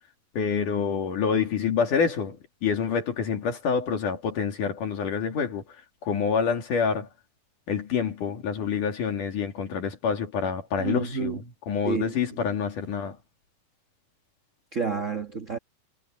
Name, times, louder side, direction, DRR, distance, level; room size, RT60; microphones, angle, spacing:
voice 1, 0.4-2.4 2.6-5.6 6.0-7.1 7.7-13.2, left 6 dB, 70° left, 4.1 m, -27 dB
voice 2, 10.8-11.4 11.8-12.2 14.7-15.6, right 5 dB, 50° right, 0.9 m, -29 dB
omnidirectional pair, 3.9 m